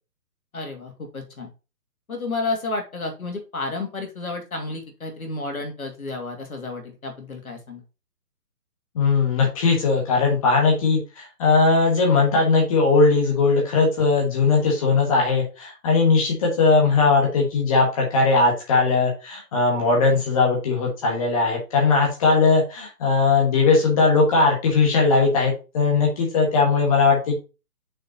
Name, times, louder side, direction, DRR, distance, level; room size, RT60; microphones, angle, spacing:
voice 1, 0.5-1.5 2.1-7.8, left 3 dB, 60° left, 3 dB, 2.7 m, -31 dB
voice 2, 8.9-27.4, left 4 dB, 20° left, -1 dB, 1.5 m, -19 dB
6.3 x 5.6 x 3.8 m, 0.30 s
figure-of-eight pair, 140°, 48 cm